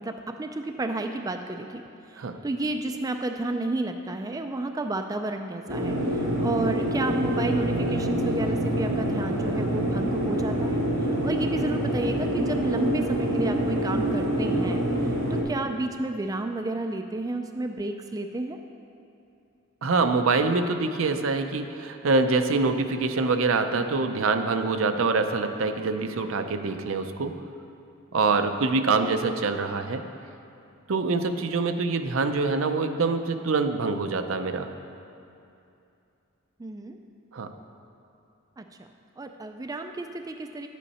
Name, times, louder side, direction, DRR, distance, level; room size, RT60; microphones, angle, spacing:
voice 1, 0.0-1.8 2.1-6.0 6.4-10.8 11.2-14.8 15.3-18.6 36.6-37.0 38.6-38.9 39.2-40.7, right 2 dB, 15° right, 5 dB, 0.3 m, -31 dB
sound 1, 5.7-15.4, right 1 dB, 90° right, 2.4 m, -26 dB
voice 2, 19.8-27.4 28.1-30.0 30.9-34.7 37.3-37.5, right 3 dB, 70° right, 7 dB, 0.6 m, -25 dB
10.5 x 8.3 x 4.2 m, 2.6 s
head